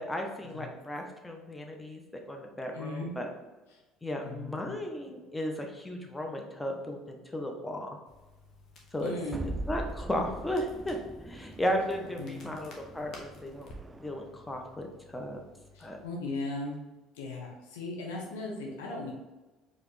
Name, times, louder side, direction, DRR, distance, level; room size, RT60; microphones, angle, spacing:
voice 1, 0.0-3.3 4.0-8.0 8.9-9.1 9.7-11.0 11.2-13.7 14.0-15.4 15.8-16.0, equal, 15° left, 2 dB, 0.8 m, -35 dB
voice 2, 2.7-3.3 4.2-4.8 9.0-9.5 12.2-12.5 15.7-16.8 17.2-19.1, left 2 dB, 80° left, -2 dB, 1.0 m, -37 dB
Crackle, 8.1-16.1, left 1 dB, 55° left, 1.1 m, -54 dB
sound 1, 9.3-14.4, right 2 dB, 20° right, 0.3 m, -42 dB
4.8 x 3.0 x 3.2 m, 1.1 s
hypercardioid pair, 60°, 0 cm